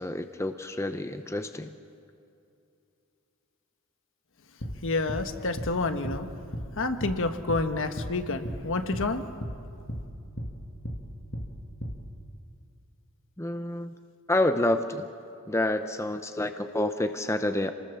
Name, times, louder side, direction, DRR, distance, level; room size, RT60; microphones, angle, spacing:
voice 1, 0.0-1.7 13.4-14.0 14.3-15.1 15.5-17.7, left 1 dB, 15° left, 8 dB, 0.7 m, -28 dB
sound 1, 4.6-4.8 5.1-5.2 5.6-5.7 6.0-6.2 6.5-6.7 7.0-7.2 7.5-7.6 8.0-8.1 8.4-8.6 8.9-9.1 9.4-9.6 9.9-10.0 10.4-10.5 10.8-11.0 11.3-11.5 11.8-12.0, equal, 50° left, 2.1 m, -34 dB
voice 2, 4.8-6.3 6.7-9.2, left 3 dB, 65° left, 8 dB, 1.4 m, -29 dB
27.5 x 20.0 x 7.1 m, 2.6 s
head